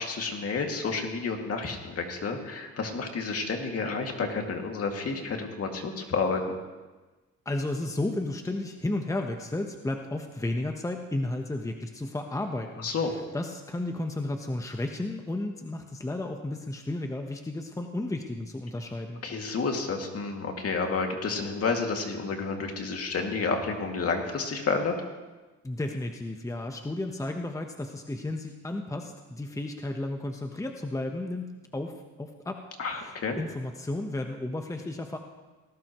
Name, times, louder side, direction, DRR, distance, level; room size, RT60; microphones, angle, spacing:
voice 1, 0.0-6.6 12.8-13.1 19.2-25.0 32.8-33.4, left 4 dB, 50° left, 2 dB, 2.4 m, -30 dB
voice 2, 7.4-19.2 25.6-32.6 32.9-35.2, left 2 dB, 10° left, 4 dB, 1.1 m, -33 dB
19.5 x 17.5 x 3.1 m, 1.2 s
cardioid pair, 90°, 30 cm